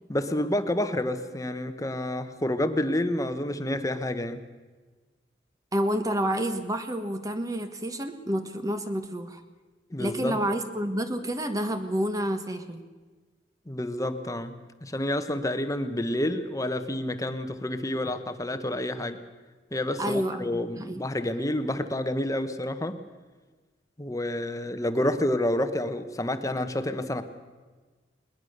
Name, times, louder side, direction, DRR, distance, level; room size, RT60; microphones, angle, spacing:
voice 1, 0.1-4.4 9.9-10.4 13.7-19.2 19.7-23.0 24.0-27.2, left 1 dB, 20° left, 9 dB, 1.1 m, -29 dB
voice 2, 5.7-9.4 10.0-12.8 18.0-18.1 20.0-21.0, right 1 dB, 20° right, 8 dB, 1.4 m, -29 dB
21.0 x 20.5 x 6.7 m, 1.3 s
head